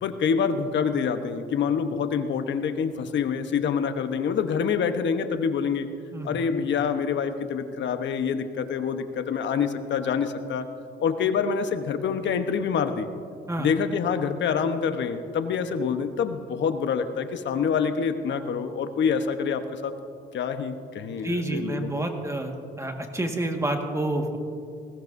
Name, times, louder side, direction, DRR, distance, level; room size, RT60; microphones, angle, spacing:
voice 1, 0.0-5.9 6.2-10.7 11.0-13.1 13.6-19.9 20.3-22.1, left 6 dB, 65° left, 8 dB, 1.0 m, -26 dB
voice 2, 21.1-24.4, right 1 dB, 15° right, 3 dB, 1.7 m, -29 dB
20.0 x 16.5 x 2.7 m, 2.4 s
cardioid pair, 90°, 20 cm